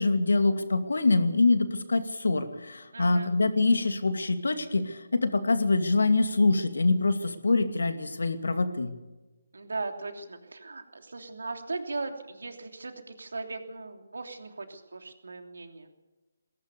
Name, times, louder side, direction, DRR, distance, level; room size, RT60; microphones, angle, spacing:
voice 1, 0.0-8.9, left 3 dB, 70° left, 8 dB, 2.4 m, -25 dB
voice 2, 2.9-3.3 9.5-15.9, right 3 dB, 70° right, 5 dB, 3.2 m, -38 dB
20.5 x 18.5 x 6.8 m, 1.2 s
figure-of-eight pair, 145°, 0 cm